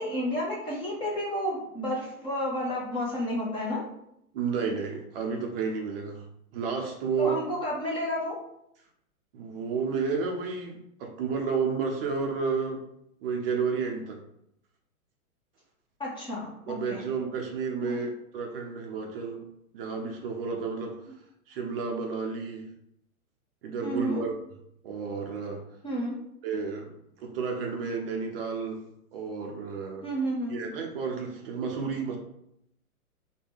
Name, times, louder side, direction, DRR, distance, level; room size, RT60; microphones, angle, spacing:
voice 1, 0.0-3.8 7.2-8.4 16.0-17.0 17.8-18.0 23.8-24.2 25.8-26.2 30.0-30.6, equal, 10° left, -5 dB, 0.7 m, -31 dB
voice 2, 4.3-6.3 6.5-7.4 9.3-12.8 13.2-14.2 16.7-19.5 19.7-21.0 21.5-22.7 23.6-24.3 24.8-25.7 26.4-30.1 30.5-32.2, right 5 dB, 40° right, 2 dB, 0.6 m, -31 dB
4.6 x 2.2 x 3.4 m, 0.77 s
hypercardioid pair, 125°, 44 cm